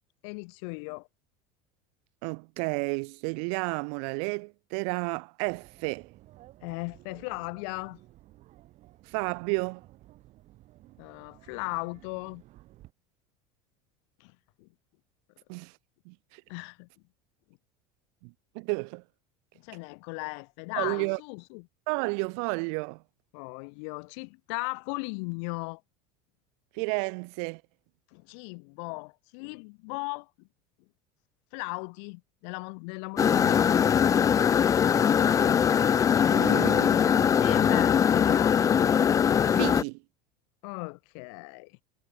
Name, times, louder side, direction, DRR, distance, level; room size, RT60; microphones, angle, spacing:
voice 1, 0.2-1.1 6.6-8.0 11.0-12.4 14.2-14.3 14.6-14.7 16.5-16.9 19.6-21.7 23.3-25.8 28.1-30.5 31.5-34.0 37.4-38.7 40.6-41.8, left 38 dB, 75° left, 1.3 m, -37 dB
voice 2, 2.2-6.1 9.1-9.8 15.5-15.7 16.1-16.4 18.2-19.0 20.8-21.2 21.9-23.0 26.7-27.6 36.3-37.4 39.5-40.0, right 40 dB or more, 70° right, 1.8 m, -32 dB
sound 1, 5.4-12.9, right 16 dB, 50° right, 3.6 m, -55 dB
sound 2, 33.2-39.8, left 8 dB, 20° left, 0.4 m, -22 dB
supercardioid pair, 135°, 16 cm